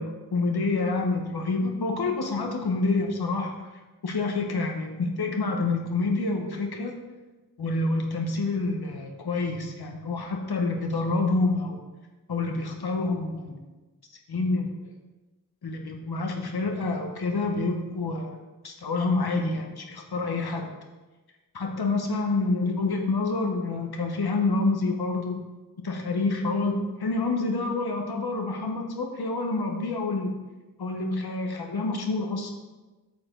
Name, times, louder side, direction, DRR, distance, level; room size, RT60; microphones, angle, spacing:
voice 1, 0.0-3.5 4.0-7.0 7.6-11.8 12.3-13.6 14.3-14.7 15.6-18.4 18.6-20.7 21.5-25.4 25.8-30.3 30.8-32.5, left 3 dB, 80° left, 2 dB, 1.3 m, -27 dB
8.7 x 7.0 x 3.9 m, 1.2 s
cardioid pair, 45°, 38 cm